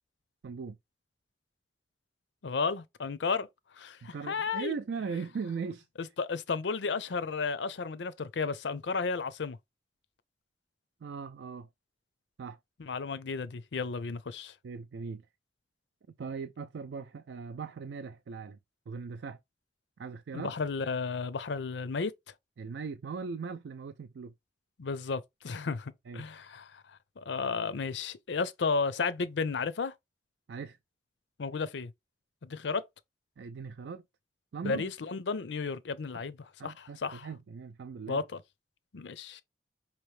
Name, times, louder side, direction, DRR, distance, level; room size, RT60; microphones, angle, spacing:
voice 1, 0.4-0.8 4.0-5.9 11.0-11.7 12.4-12.6 14.6-15.2 16.2-18.6 18.9-19.4 20.0-20.5 22.6-24.3 26.1-26.3 30.5-30.8 33.4-34.0 34.5-34.8 36.1-36.3 36.6-38.3, right 5 dB, 90° right, 0.4 m, -39 dB
voice 2, 2.4-3.5 3.8-4.7 6.2-9.6 12.8-14.5 20.3-22.1 24.8-26.8 27.2-29.9 31.4-31.9 32.4-32.8 34.6-36.4 36.6-37.3 38.1-38.2 38.9-39.4, left 4 dB, 90° left, 0.6 m, -33 dB
5.3 x 3.0 x 3.2 m
head